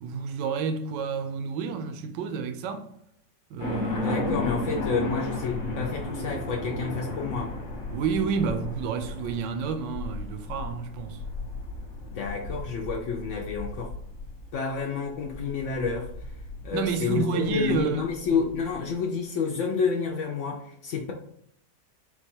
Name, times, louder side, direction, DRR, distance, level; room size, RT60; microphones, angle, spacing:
voice 1, 0.0-2.9 3.5-4.2 7.9-11.2 16.7-18.1 18.3-18.4, right 5 dB, 75° right, 1.2 m, -30 dB
sound 1, 3.6-18.7, left 2 dB, 50° left, 1.1 m, -35 dB
voice 2, 3.9-7.5 12.1-13.9 14.5-16.1 16.6-21.1, left 5 dB, 75° left, 0.6 m, -29 dB
4.6 x 2.3 x 4.3 m
omnidirectional pair, 1.9 m